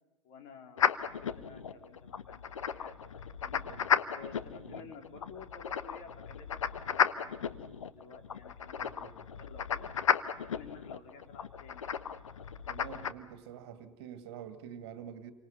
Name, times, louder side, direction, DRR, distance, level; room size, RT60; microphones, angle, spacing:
voice 1, 0.2-3.6 4.1-9.1 9.4-9.9 10.4-12.0, left 5 dB, 45° left, 3.9 m, -53 dB
sound 1, 0.8-13.1, left 8 dB, 70° left, 1.1 m, -34 dB
voice 2, 3.5-3.9 4.6-5.0 8.8-9.2 12.6-15.3, right 9 dB, 50° right, 2.1 m, -47 dB
28.5 x 25.0 x 5.5 m
figure-of-eight pair, 90°, 17 cm